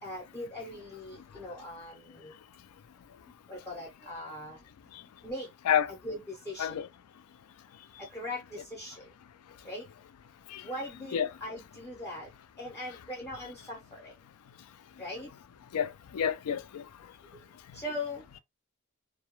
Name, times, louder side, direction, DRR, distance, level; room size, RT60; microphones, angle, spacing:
voice 1, 0.0-2.3 3.5-4.6 5.2-5.5 5.9-6.7 8.0-9.1 9.6-9.9 10.6-12.3 12.6-14.1 15.0-15.3 17.3-17.4 17.7-18.4, left 1 dB, 15° left, 0.5 m, -40 dB
voice 2, 15.7-16.8, left 8 dB, 90° left, 0.3 m, -29 dB
2.2 x 2.0 x 2.9 m
head